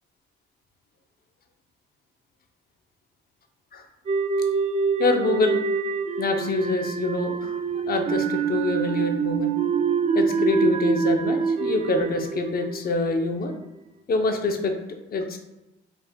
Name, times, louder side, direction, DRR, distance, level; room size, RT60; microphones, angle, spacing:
sound 1, 4.1-13.3, right 5 dB, 35° right, 0.4 m, -25 dB
voice 1, 5.0-5.6 6.2-7.5 7.9-9.5 10.1-13.5 14.1-14.8 15.1-15.4, left 3 dB, 50° left, 5 dB, 0.8 m, -25 dB
5.3 x 4.3 x 2.3 m, 1.0 s
cardioid pair, 90°, 20 cm